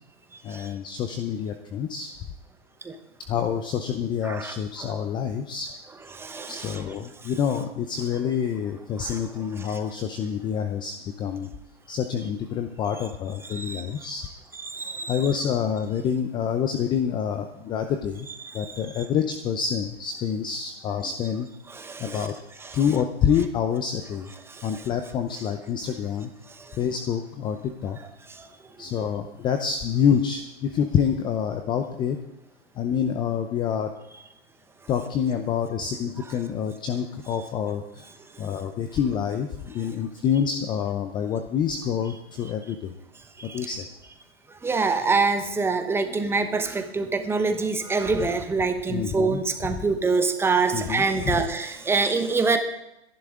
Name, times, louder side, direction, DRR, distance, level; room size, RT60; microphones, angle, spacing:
voice 1, 0.4-2.1 3.3-5.7 6.5-11.5 11.9-14.3 15.1-18.3 18.5-21.5 22.0-22.4 22.7-24.3 24.6-26.3 26.8-28.0 28.8-32.2 32.8-33.9 34.9-38.0 38.4-42.9 43.4-43.9 48.9-49.4 50.7-51.4, left 8 dB, 15° left, 7 dB, 0.5 m, -27 dB
voice 2, 4.2-4.9 6.1-6.8 7.2-7.3 9.1-9.2 9.6-9.8 13.5-13.9 14.6-15.2 18.4-18.8 21.7-22.3 22.6-22.8 24.5-24.9 26.5-26.8 28.3-28.5 29.0-29.1 43.4-43.7 44.5-52.6, right 4 dB, 5° right, 7 dB, 0.9 m, -26 dB
22.0 x 11.0 x 3.7 m, 0.87 s
hypercardioid pair, 140°, 34 cm